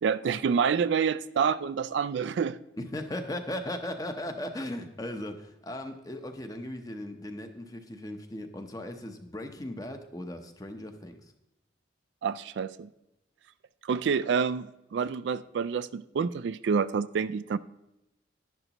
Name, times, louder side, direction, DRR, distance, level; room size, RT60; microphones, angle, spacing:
voice 1, 0.0-2.6 12.2-12.9 13.8-17.6, right 6 dB, 70° right, 15 dB, 0.3 m, -28 dB
voice 2, 2.8-11.2, left 1 dB, 20° left, 6 dB, 0.7 m, -37 dB
11.0 x 11.0 x 3.0 m, 0.89 s
head